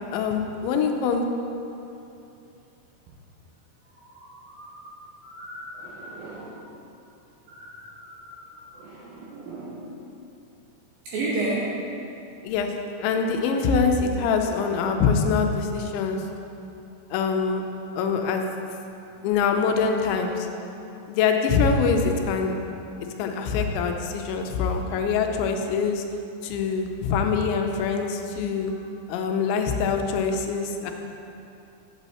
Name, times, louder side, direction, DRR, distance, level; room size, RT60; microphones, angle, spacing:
voice 1, 0.1-1.2 12.4-12.7 13.0-16.2 17.1-17.6 18.0-18.4 19.2-20.5 21.1-22.6 23.2-26.0 26.4-28.7 29.1-30.9, left 5 dB, 90° left, 4 dB, 3.0 m, -24 dB
voice 2, 3.9-4.9 5.2-6.7 7.5-9.9 11.1-11.9 19.0-19.3 28.7-28.8, right 2 dB, 75° right, -5 dB, 2.1 m, -34 dB
8.2 x 8.1 x 4.2 m, 2.8 s
omnidirectional pair, 5.1 m